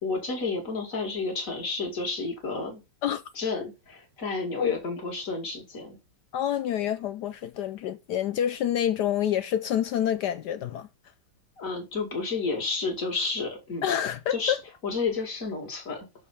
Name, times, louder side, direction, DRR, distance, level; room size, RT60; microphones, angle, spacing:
voice 1, 0.0-2.8 3.3-6.0 11.6-13.9 14.3-14.6 14.8-16.1, left 4 dB, 40° left, 2.7 m, -31 dB
voice 2, 6.3-10.9 13.8-14.6, left 10 dB, 70° left, 1.0 m, -27 dB
6.5 x 5.2 x 5.4 m
omnidirectional pair, 2.2 m